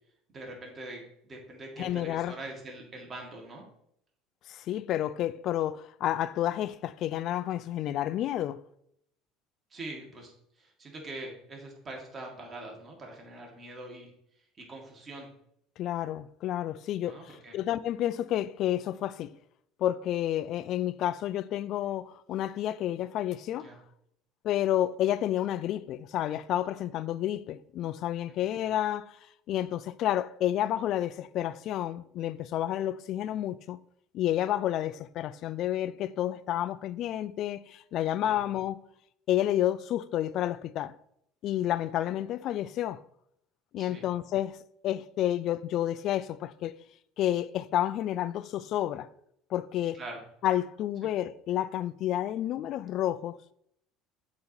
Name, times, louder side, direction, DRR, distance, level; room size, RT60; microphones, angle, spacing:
voice 1, 0.3-3.6 9.7-10.3 10.6-14.1 14.6-15.3 17.0-17.6 23.6-23.8 28.3-28.5 38.2-38.4 43.8-44.0 49.9-50.2, right 2 dB, 30° right, 1.8 m, -43 dB
voice 2, 1.8-2.3 4.5-8.6 15.8-19.3 19.8-23.7 24.4-29.2 29.5-33.8 34.1-38.8 39.3-40.9 41.4-43.0 43.7-44.6 44.8-46.7 47.2-49.1 49.5-50.0 50.4-53.4, left 12 dB, 55° left, 0.3 m, -30 dB
7.7 x 2.9 x 4.3 m
supercardioid pair, 110°, 0 cm